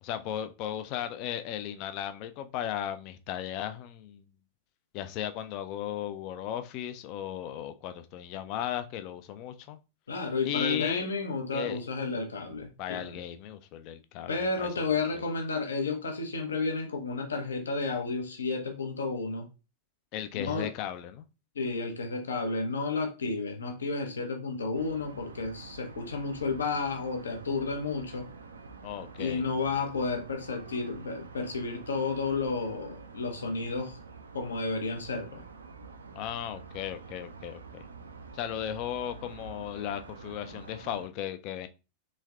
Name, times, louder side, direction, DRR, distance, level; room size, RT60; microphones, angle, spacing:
voice 1, 0.0-4.2 4.9-9.8 10.4-11.1 11.5-11.8 12.8-15.2 20.1-21.2 28.8-29.4 36.1-37.8 38.3-41.7, left 11 dB, 40° left, 0.4 m, -36 dB
voice 2, 10.1-13.1 14.3-19.5 20.3-20.7 21.5-28.3 29.2-34.0 34.3-35.4, left 4 dB, 70° left, 0.7 m, -32 dB
sound 1, 24.7-41.1, right 4 dB, 70° right, 0.4 m, -47 dB
3.5 x 3.2 x 2.4 m
figure-of-eight pair, 90°, 0 cm